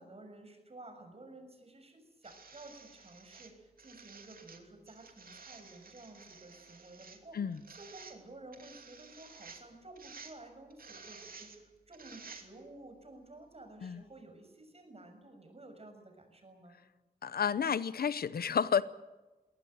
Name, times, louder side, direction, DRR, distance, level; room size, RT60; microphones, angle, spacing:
voice 1, 0.0-16.8, right 2 dB, 40° right, 5 dB, 6.7 m, -53 dB
sound 1, 2.2-12.8 13.8-13.9, right 4 dB, 70° right, 2.9 m, -53 dB
voice 2, 17.2-18.8, left 7 dB, 90° left, 16 dB, 0.8 m, -31 dB
22.0 x 18.0 x 9.1 m, 1.2 s
wide cardioid pair, 65°, 15 cm